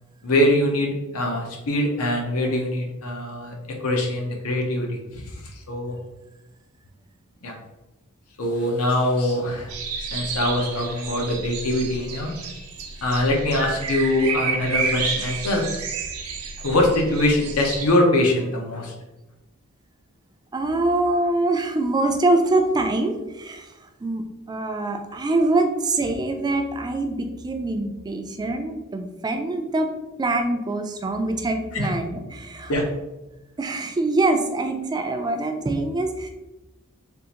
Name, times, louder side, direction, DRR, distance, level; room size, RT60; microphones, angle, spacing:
voice 1, 0.2-3.5 3.8-6.0 7.4-7.5 8.4-9.7 10.0-12.3 13.0-15.6 16.6-18.9 31.7-31.9 32.7-32.8, left 1 dB, 85° left, 1 dB, 0.7 m, -23 dB
sound 1, 9.7-17.9, right 5 dB, 80° right, 0.5 m, -30 dB
voice 2, 20.5-23.7 24.0-29.9 30.2-32.7 33.6-36.3, right 2 dB, 20° right, 5 dB, 0.3 m, -24 dB
3.5 x 2.4 x 2.8 m, 1.0 s
head